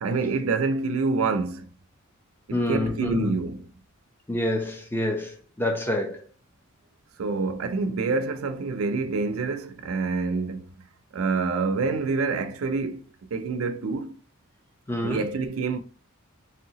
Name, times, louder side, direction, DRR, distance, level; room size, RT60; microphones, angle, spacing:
voice 1, 0.0-1.7 2.5-3.7 7.2-10.7 11.1-14.1 15.0-15.8, right 4 dB, 75° right, 0.4 m, -27 dB
voice 2, 2.5-3.3 4.3-5.3 5.6-6.2 14.9-15.2, left 1 dB, 10° left, 0.5 m, -26 dB
3.3 x 2.7 x 2.8 m
head